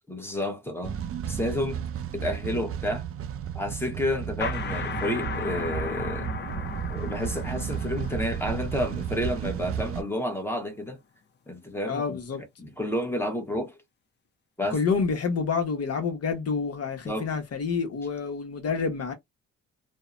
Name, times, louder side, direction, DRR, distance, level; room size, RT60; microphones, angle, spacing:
voice 1, 0.1-0.9 1.3-1.8 2.1-3.0 3.5-6.3 6.9-11.0 11.5-12.2 12.6-13.8 14.6-14.8 17.0-17.3, left 1 dB, 10° left, 0.9 m, -30 dB
sound 1, 0.8-10.0, right 8 dB, 50° right, 0.5 m, -33 dB
sound 2, 4.4-9.8, left 6 dB, 35° left, 0.5 m, -36 dB
voice 2, 11.9-12.4 14.7-19.1, left 5 dB, 55° left, 0.9 m, -28 dB
2.7 x 2.1 x 2.4 m
cardioid pair, 90°, 30 cm